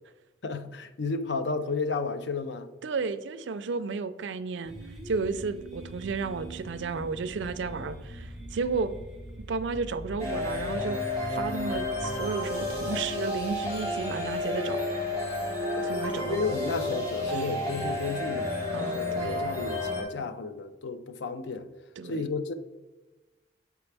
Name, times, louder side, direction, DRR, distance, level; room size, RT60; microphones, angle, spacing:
voice 1, 0.4-2.7 15.8-15.9 16.2-21.7 22.0-22.5, left 4 dB, 60° left, 0.5 m, -32 dB
voice 2, 2.8-4.7 5.1-8.9 9.5-14.8 15.8-16.6 17.3-17.5 18.7-19.5 22.0-22.2, right 4 dB, 70° right, 0.4 m, -33 dB
sound 1, 4.6-17.5, right 1 dB, ahead, 0.8 m, -44 dB
sound 2, 10.2-20.0, left 2 dB, 15° left, 1.4 m, -31 dB
6.9 x 4.7 x 3.3 m
head